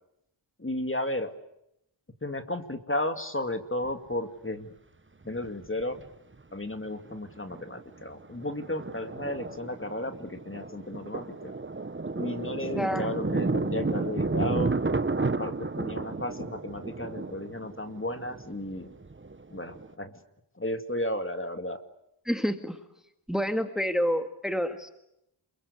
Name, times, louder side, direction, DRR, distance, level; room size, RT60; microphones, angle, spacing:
voice 1, 0.6-1.3 2.2-4.7 5.2-6.0 6.5-11.5 12.1-14.7 15.2-18.9 19.5-20.1 20.6-21.8, left 1 dB, 25° left, 7 dB, 2.4 m, -34 dB
Thunder, 3.8-3.9 5.3-6.1 6.3-6.4 6.9-7.1 7.5-19.9, right 3 dB, 25° right, 1.1 m, -32 dB
voice 2, 12.7-13.1 22.3-22.8 23.3-24.9, equal, ahead, 7 dB, 2.0 m, -28 dB
28.0 x 23.0 x 8.4 m, 0.82 s
wide cardioid pair, 60°, 49 cm